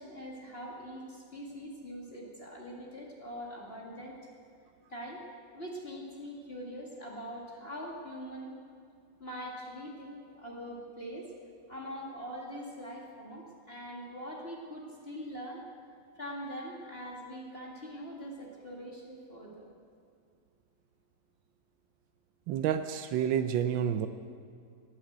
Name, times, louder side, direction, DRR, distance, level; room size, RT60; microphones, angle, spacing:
voice 1, 0.0-4.3 4.9-5.2 5.5-8.5 9.2-11.3 11.7-15.6 16.1-19.7, equal, 30° left, -3 dB, 2.3 m, -43 dB
voice 2, 22.5-24.1, right 9 dB, 90° right, 9 dB, 1.4 m, -29 dB
18.0 x 9.9 x 7.9 m, 2.3 s
omnidirectional pair, 2.0 m